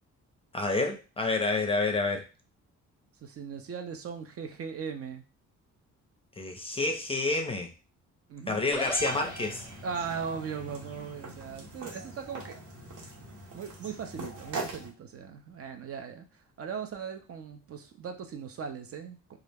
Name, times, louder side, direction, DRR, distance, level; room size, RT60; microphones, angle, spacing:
voice 1, 0.5-2.2 6.4-7.7 8.5-9.7, left 3 dB, 20° left, 4 dB, 0.5 m, -29 dB
voice 2, 3.2-5.2 8.3-8.6 9.8-12.6 13.5-16.3 16.6-19.2, right 6 dB, 50° right, 6 dB, 0.5 m, -38 dB
sound 1, 8.7-10.1, equal, 10° right, 0.9 m, -36 dB
sound 2, 9.0-14.9, right 3 dB, 70° right, 1.0 m, -42 dB
2.3 x 2.0 x 3.3 m, 0.32 s
cardioid pair, 90°, 30 cm